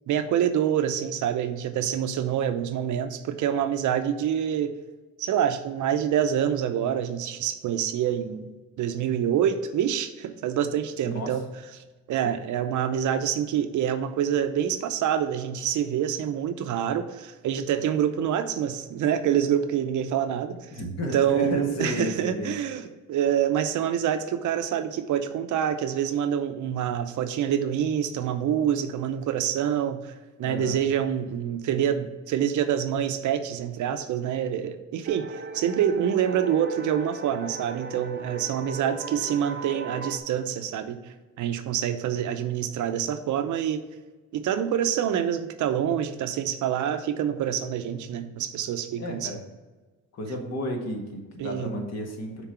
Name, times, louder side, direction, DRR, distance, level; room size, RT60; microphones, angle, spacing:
voice 1, 0.1-4.7 5.2-8.5 8.8-11.5 12.1-20.6 21.1-30.1 30.4-41.0 41.4-43.8 44.3-49.3 51.4-51.8, right 9 dB, 75° right, 9 dB, 0.7 m, -26 dB
voice 2, 11.0-11.3 20.7-22.5 30.4-30.8 49.0-49.4 50.1-52.5, left 1 dB, 60° left, 2 dB, 1.6 m, -32 dB
sound 1, 35.1-40.2, right 3 dB, 40° right, 0.7 m, -38 dB
6.0 x 3.9 x 5.6 m, 1.2 s
cardioid pair, 90°, 30 cm